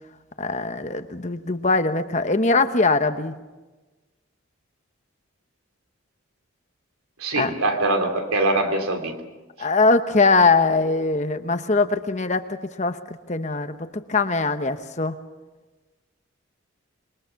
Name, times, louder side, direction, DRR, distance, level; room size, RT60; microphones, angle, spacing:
voice 1, 0.4-3.3 7.4-7.5 9.6-13.0 13.3-15.1, left 3 dB, 35° left, 9 dB, 1.0 m, -21 dB
voice 2, 7.2-9.1, right 2 dB, 90° right, 5 dB, 3.3 m, -23 dB
28.0 x 22.0 x 5.9 m, 1.2 s
head